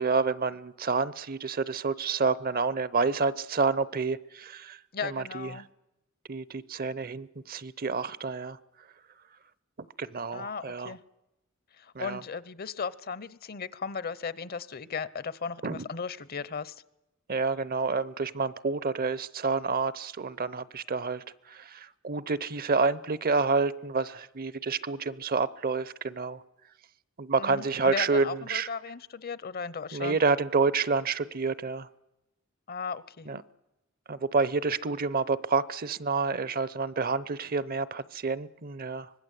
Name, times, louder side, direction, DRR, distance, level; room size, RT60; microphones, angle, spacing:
voice 1, 0.0-5.6 6.3-8.6 10.0-11.0 11.9-12.2 15.6-15.9 17.3-26.4 27.2-28.7 29.9-31.9 33.3-33.4 34.1-39.1, right 4 dB, 45° right, 18 dB, 0.8 m, -29 dB
voice 2, 4.9-5.7 10.3-11.0 11.8-16.8 27.4-30.2 32.7-33.3, left 5 dB, 45° left, 18 dB, 0.8 m, -36 dB
24.5 x 20.5 x 8.3 m, 0.94 s
head